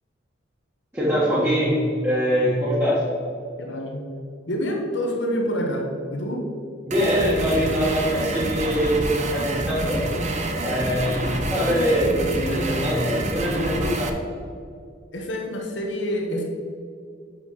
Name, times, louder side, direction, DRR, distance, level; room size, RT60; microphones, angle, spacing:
voice 1, 0.9-3.0 6.8-10.0 10.6-14.1, equal, 15° right, -10 dB, 1.4 m, -23 dB
voice 2, 3.6-4.0 4.5-6.4 11.2-11.9 15.1-16.4, equal, 65° left, 1 dB, 1.3 m, -27 dB
sound 1, 6.9-14.1, right 2 dB, 40° right, 0.7 m, -27 dB
6.3 x 5.4 x 6.0 m, 2.4 s
head